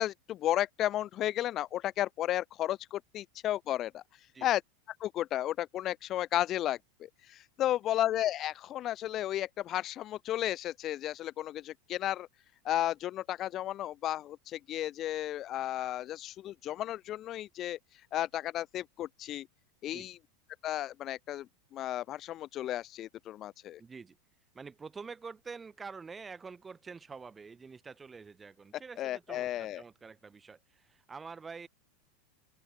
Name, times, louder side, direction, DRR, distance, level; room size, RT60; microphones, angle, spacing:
voice 1, 0.0-4.6 5.0-12.3 12.6-19.5 19.8-20.2 20.6-21.5 21.7-23.8 29.0-29.8, left 13 dB, 40° left, 0.7 m, -33 dB
voice 2, 23.8-24.2 24.5-31.7, right 5 dB, 20° right, 4.1 m, -47 dB
open air
hypercardioid pair, 95°, 0 cm